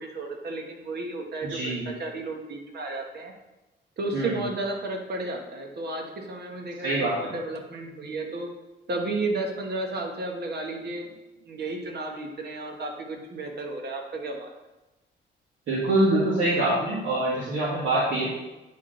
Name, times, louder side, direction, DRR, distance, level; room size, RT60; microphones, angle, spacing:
voice 1, 0.0-3.3 4.0-8.5 8.9-11.1 11.4-14.5, right 2 dB, 55° right, 2 dB, 1.4 m, -33 dB
voice 2, 1.4-1.9 4.1-4.3 6.8-7.3 15.7-18.3, right 1 dB, 70° right, -9 dB, 2.1 m, -24 dB
9.5 x 3.8 x 3.9 m, 1.1 s
cardioid pair, 90°, 20 cm